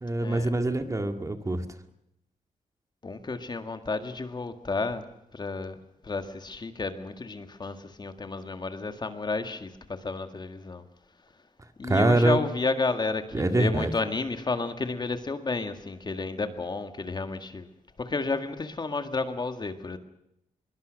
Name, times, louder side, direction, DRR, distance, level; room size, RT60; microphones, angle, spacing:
voice 1, 0.0-1.6 11.8-12.4 13.3-13.9, right 2 dB, 25° right, 2.0 m, -24 dB
voice 2, 3.0-5.8 6.0-10.9 11.8-17.7 18.0-20.0, left 3 dB, 30° left, 1.9 m, -31 dB
24.0 x 22.5 x 6.5 m
wide cardioid pair, 110°, 14 cm